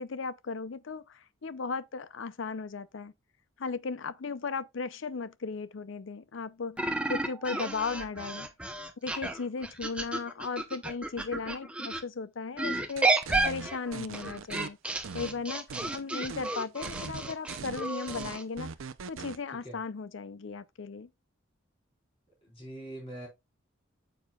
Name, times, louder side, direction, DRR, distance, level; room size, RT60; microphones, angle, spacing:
voice 1, 0.0-3.1 3.6-8.5 9.0-13.1 13.4-14.8 15.1-15.7 15.9-18.7 19.1-21.1, left 4 dB, 70° left, 0.5 m, -36 dB
sound 1, 6.8-12.0 12.6-18.4, right 2 dB, 5° right, 0.7 m, -32 dB
sound 2, 13.0-14.7 15.0-16.0 16.3-16.5 16.8-19.4, right 5 dB, 85° right, 0.6 m, -41 dB
voice 2, 22.4-23.3, right 1 dB, 25° left, 4.3 m, -43 dB
9.0 x 7.1 x 2.3 m
head